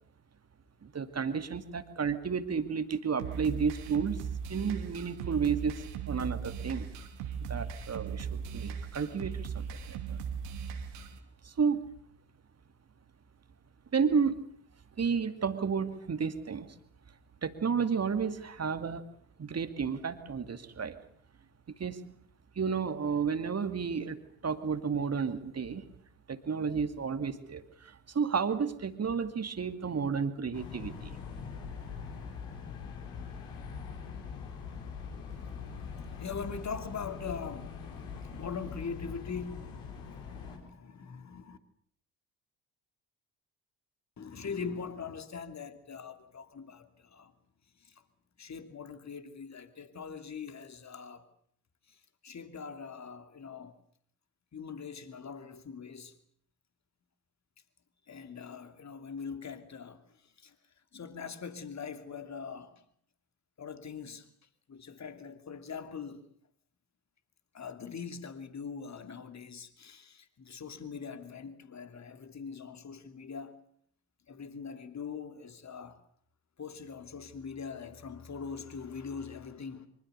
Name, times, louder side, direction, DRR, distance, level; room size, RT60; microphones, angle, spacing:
voice 1, 0.8-4.2 4.5-6.9 7.5-10.2 11.4-11.8 13.9-14.4 15.0-16.7 17.4-19.0 19.4-21.0 21.8-22.0 22.6-24.2 24.4-25.9 26.3-31.2, right 6 dB, 30° right, 2.4 m, -32 dB
sound 1, 3.2-11.2, right 7 dB, 70° right, 2.9 m, -38 dB
sound 2, 30.5-40.6, left 6 dB, 65° left, 4.6 m, -42 dB
voice 2, 36.2-37.7 38.1-41.6 44.2-47.3 47.8-48.0 48.4-51.3 51.9-53.8 54.5-56.2 58.1-60.6 60.9-62.8 63.6-64.3 64.7-66.3 67.5-73.6 74.3-76.0 76.6-79.9, left 6 dB, 35° left, 2.7 m, -42 dB
25.0 x 23.5 x 6.8 m
figure-of-eight pair, 45°, 49 cm